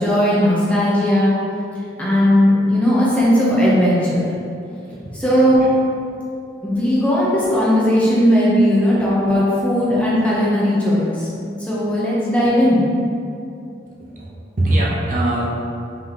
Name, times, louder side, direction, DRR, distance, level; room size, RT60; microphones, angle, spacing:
voice 1, 0.0-1.3 2.0-4.3 5.2-5.6 6.6-11.3 11.7-12.8, equal, 5° left, -8 dB, 0.6 m, -17 dB
voice 2, 14.6-15.5, right 1 dB, 45° right, -5 dB, 0.6 m, -21 dB
3.8 x 2.8 x 3.2 m, 2.6 s
head